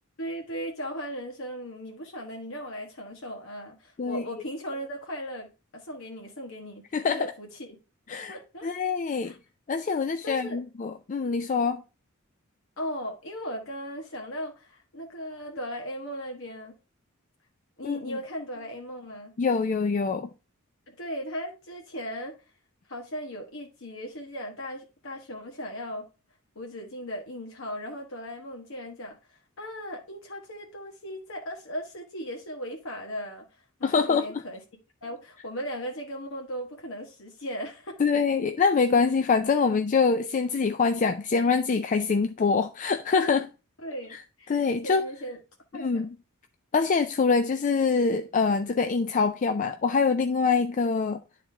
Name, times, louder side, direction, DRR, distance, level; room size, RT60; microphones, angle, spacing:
voice 1, 0.2-5.5 5.7-6.8 7.1-7.8 8.3-8.7 9.2-9.4 10.2-10.6 12.8-16.7 17.8-19.3 20.9-22.3 22.9-26.0 26.5-34.6 35.0-38.1 43.8-44.5 44.8-45.4 45.7-46.0, equal, 65° left, 1.3 m, -37 dB
voice 2, 6.9-7.3 8.1-8.4 8.6-9.3 9.7-11.8 17.8-18.2 19.4-20.3 33.8-34.3 38.0-43.5 44.5-45.1 45.7-46.1 46.7-51.2, left 5 dB, 35° left, 0.4 m, -24 dB
10.0 x 4.1 x 3.3 m
head